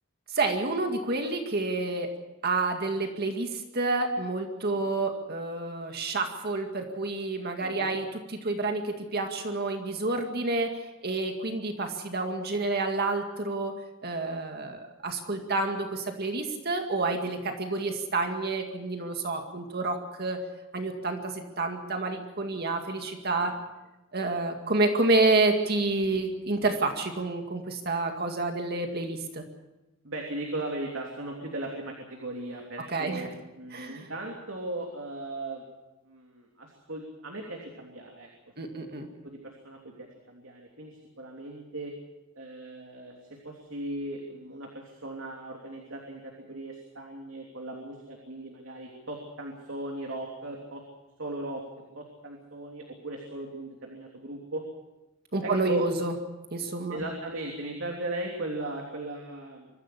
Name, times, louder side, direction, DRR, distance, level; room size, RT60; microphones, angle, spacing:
voice 1, 0.3-2.1 2.4-13.7 14.0-20.4 20.7-23.6 24.1-29.4 32.9-33.3 33.7-34.1 38.6-39.1 55.3-56.1 56.5-57.0, right 2 dB, 50° right, 4 dB, 2.1 m, -29 dB
voice 2, 7.6-8.0 30.0-35.6 36.0-38.3 38.6-41.9 42.3-50.8 51.2-51.6 51.9-54.6 55.4-56.0 56.9-59.7, right 2 dB, 65° right, 0 dB, 3.2 m, -38 dB
24.0 x 14.5 x 8.3 m, 1.0 s
head